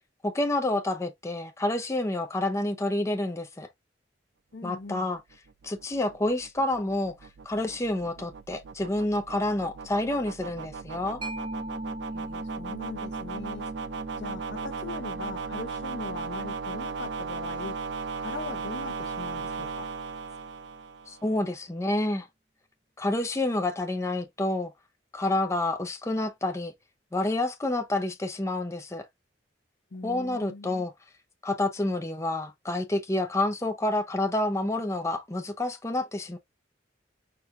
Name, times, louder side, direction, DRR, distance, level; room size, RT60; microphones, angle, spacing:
voice 1, 0.2-3.7 4.6-5.2 5.6-7.1 7.4-11.2 21.1-22.3 23.0-24.7 25.1-26.7 27.1-29.0 30.0-30.9 31.4-36.4, left 2 dB, 15° left, 0.6 m, -28 dB
voice 2, 4.5-5.1 12.1-13.7 14.2-17.8 18.2-19.9 29.9-30.9, left 3 dB, 70° left, 0.7 m, -40 dB
sound 1, 5.2-21.3, right 5 dB, 70° right, 0.4 m, -37 dB
Mallet percussion, 11.2-18.5, right 1 dB, 25° right, 0.7 m, -41 dB
4.4 x 2.5 x 3.5 m
head